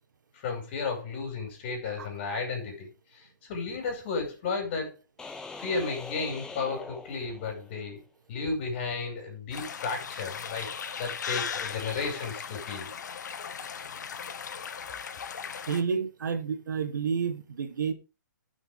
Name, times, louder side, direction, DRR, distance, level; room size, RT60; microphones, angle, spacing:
voice 1, 0.4-4.9 5.6-8.0 8.3-12.9, left 4 dB, 35° left, 5.3 m, -33 dB
sound 1, 5.2-7.8, left 4 dB, 5° left, 1.0 m, -42 dB
sound 2, 9.5-15.8, left 7 dB, 65° left, 1.3 m, -37 dB
voice 2, 15.7-17.9, right 6 dB, 70° right, 1.6 m, -30 dB
16.0 x 6.2 x 3.6 m
hypercardioid pair, 155°, 10 cm